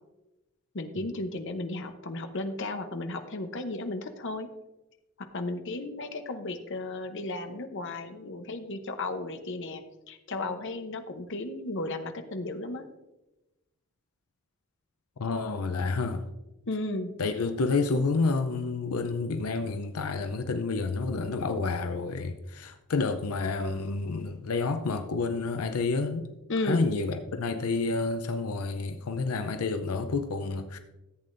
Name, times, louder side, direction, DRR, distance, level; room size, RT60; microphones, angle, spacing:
voice 1, 0.7-4.5 5.2-12.9 16.7-17.1 26.5-26.9, left 2 dB, 60° left, 0.9 m, -34 dB
voice 2, 15.2-16.2 17.2-26.3 26.6-30.8, left 3 dB, 90° left, 0.6 m, -29 dB
14.0 x 8.4 x 2.6 m
head